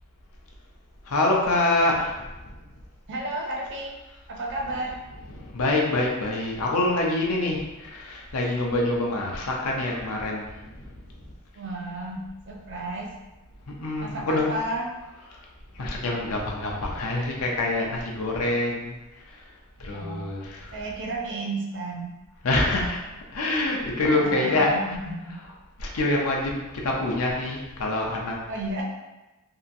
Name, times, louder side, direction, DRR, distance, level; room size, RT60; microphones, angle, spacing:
voice 1, 1.1-2.5 5.1-10.9 13.7-14.5 15.3-15.4 15.7-18.9 19.3-19.4 19.8-20.9 22.4-23.0 23.3-25.0 25.3-25.5 25.8-28.4, left 2 dB, 75° left, -1 dB, 0.6 m, -26 dB
voice 2, 3.1-3.9 4.3-5.0 11.5-13.1 14.0-14.9 19.9-22.1 24.1-25.5 26.9-27.0 28.5-28.8, right 2 dB, 55° right, -1 dB, 0.6 m, -33 dB
2.8 x 2.4 x 2.6 m, 1.1 s
head